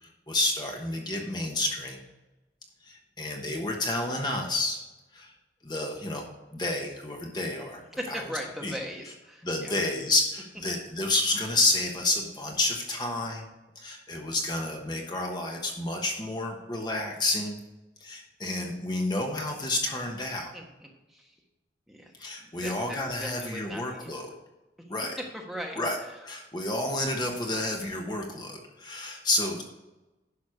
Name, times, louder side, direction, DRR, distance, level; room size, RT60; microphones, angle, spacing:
voice 1, 0.0-2.0 2.8-4.8 5.1-5.3 5.6-6.2 6.5-7.8 8.1-8.2 8.6-8.8 9.4-13.5 13.7-17.6 18.0-20.5 22.2-24.3 24.9-25.2 25.8-26.0 26.2-29.6, left 2 dB, 25° left, 1 dB, 1.2 m, -30 dB
voice 2, 8.0-9.7 20.5-21.4 21.9-22.1 22.4-24.1 24.8-24.9 25.2-26.2, equal, ahead, 0 dB, 1.3 m, -39 dB
10.5 x 6.3 x 4.9 m, 1.1 s
head